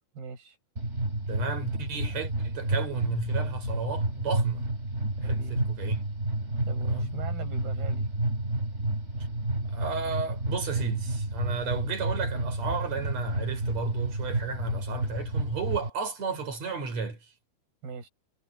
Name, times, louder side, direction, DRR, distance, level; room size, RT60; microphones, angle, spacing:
voice 1, 0.1-0.6 5.2-5.5 6.7-8.1 17.8-18.1, right 5 dB, 60° right, 7.7 m, -41 dB
sound 1, 0.8-15.9, right 1 dB, 15° right, 4.8 m, -30 dB
voice 2, 1.3-4.7 5.2-6.0 6.9-7.1 9.6-17.3, right 5 dB, 40° right, 5.7 m, -34 dB
omnidirectional pair, 4.9 m